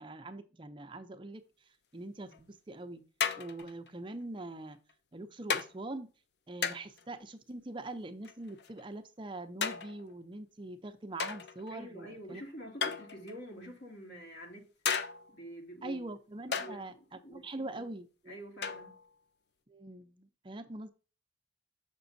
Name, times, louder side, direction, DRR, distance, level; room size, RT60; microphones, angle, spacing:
voice 1, 0.0-1.4 1.9-3.0 3.4-4.8 5.1-6.1 6.5-12.4 15.8-16.9 17.3-18.3 19.7-20.9, right 2 dB, 25° right, 0.6 m, -43 dB
sound 1, 2.3-2.4 3.2-3.9 4.7-4.9 5.5-5.7 6.6-7.0 8.2-8.8 9.6-10.1 11.2-11.7 12.8-13.5 14.9-15.4 16.5-16.8 18.6-19.1, left 6 dB, 65° left, 0.6 m, -35 dB
voice 2, 11.7-14.7 15.3-16.0 16.5-17.8 18.3-18.9, equal, 80° left, 2.5 m, -47 dB
6.9 x 6.1 x 2.6 m
head